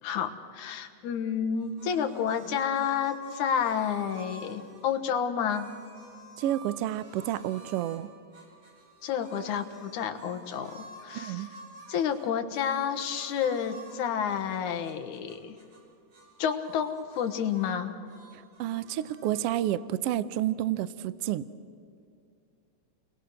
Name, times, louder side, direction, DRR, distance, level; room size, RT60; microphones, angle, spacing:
voice 1, 0.0-5.7 9.0-11.5 11.9-15.6 16.4-17.9, left 8 dB, 75° left, 7 dB, 2.8 m, -30 dB
sound 1, 1.5-5.0 5.5-8.0 8.3-15.8 16.1-17.7 18.0-19.6, right 2 dB, 70° right, 6.5 m, -50 dB
voice 2, 6.4-8.1 11.1-11.5 18.6-21.5, right 12 dB, 85° right, 15 dB, 1.3 m, -30 dB
29.5 x 22.0 x 6.4 m, 2.4 s
omnidirectional pair, 3.6 m